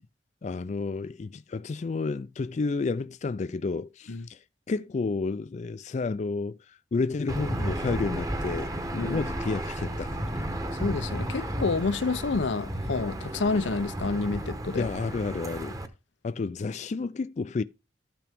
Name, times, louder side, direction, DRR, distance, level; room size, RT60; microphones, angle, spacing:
voice 1, 0.4-8.7 9.0-10.2 14.8-15.8 16.2-17.6, left 4 dB, 40° left, 0.4 m, -31 dB
Aircraft / Engine, 7.3-15.9, right 1 dB, 20° right, 1.1 m, -33 dB
voice 2, 8.9-9.2 10.8-14.9, left 4 dB, 90° left, 0.6 m, -29 dB
13.5 x 5.9 x 3.5 m
head